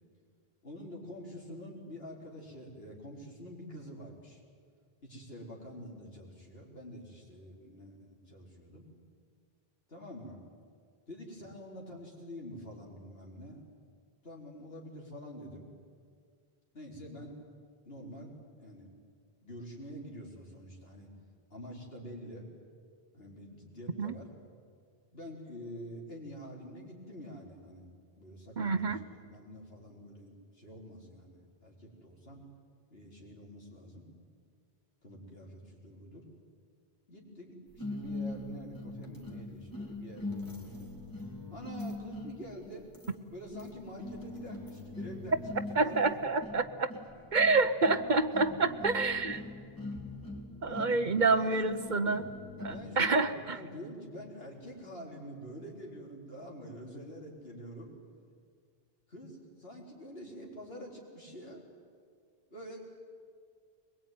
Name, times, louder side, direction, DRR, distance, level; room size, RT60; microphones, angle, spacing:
voice 1, 0.6-4.4 5.0-8.9 9.9-10.4 11.1-13.6 14.2-15.7 16.7-17.4 17.8-18.3 18.6-18.9 19.4-21.1 21.5-22.4 23.1-24.3 25.1-27.9 28.2-32.5 32.9-34.1 35.0-36.2 37.1-40.9 41.5-42.9 43.3-45.4 45.8-46.1 48.4-48.5 50.7-52.3 52.7-57.9 59.1-61.6 62.5-62.8, equal, 75° left, -2 dB, 4.6 m, -47 dB
voice 2, 28.6-29.0 45.7-46.9 47.3-49.4 50.6-52.3 52.6-53.6, right 3 dB, 50° right, 11 dB, 0.9 m, -28 dB
sound 1, 37.8-53.2, left 2 dB, 20° left, 2.8 m, -42 dB
22.5 x 21.5 x 9.4 m, 2.1 s
omnidirectional pair, 1.0 m